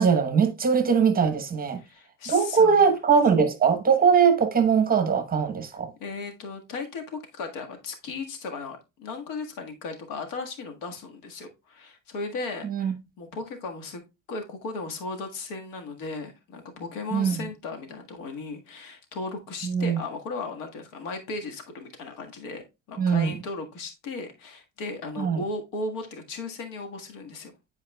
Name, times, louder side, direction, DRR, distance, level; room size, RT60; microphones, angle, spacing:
voice 1, 0.0-1.8 2.3-5.9 12.6-12.9 17.1-17.5 19.6-20.0 23.0-23.3 25.2-25.4, right 6 dB, 25° right, 1.0 m, -21 dB
voice 2, 1.8-2.8 6.0-14.0 14.3-22.6 22.9-27.5, left 3 dB, 75° left, 1.7 m, -36 dB
10.5 x 4.7 x 2.3 m
supercardioid pair, 105°, 38 cm